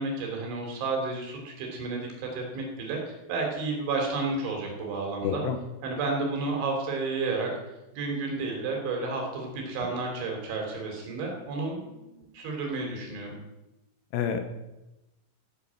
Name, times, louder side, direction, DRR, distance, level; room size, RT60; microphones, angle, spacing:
voice 1, 0.0-5.4 5.8-7.5 7.9-13.4, right 3 dB, 75° right, 1 dB, 5.7 m, -31 dB
voice 2, 5.2-5.6 14.1-14.4, left 8 dB, 75° left, 7 dB, 3.1 m, -28 dB
14.5 x 9.4 x 7.6 m, 0.99 s
omnidirectional pair, 5.4 m